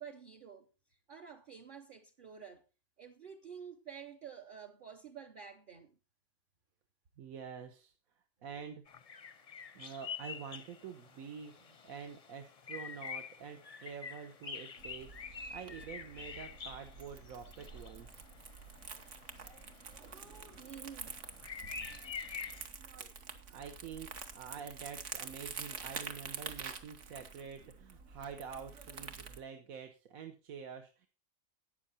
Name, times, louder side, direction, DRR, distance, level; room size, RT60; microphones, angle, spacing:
voice 1, 0.0-2.6 3.0-6.0 19.4-21.1 22.9-23.1, right 7 dB, 45° right, 0.9 m, -51 dB
voice 2, 7.2-7.9 8.4-8.8 9.7-18.2 23.5-31.1, right 6 dB, 75° right, 1.4 m, -47 dB
sound 1, 8.9-22.7, left 6 dB, 40° left, 0.5 m, -47 dB
Crumpling crinkling, 14.8-29.4, right 5 dB, 60° right, 1.4 m, -47 dB
12.5 x 8.8 x 4.1 m
omnidirectional pair, 1.5 m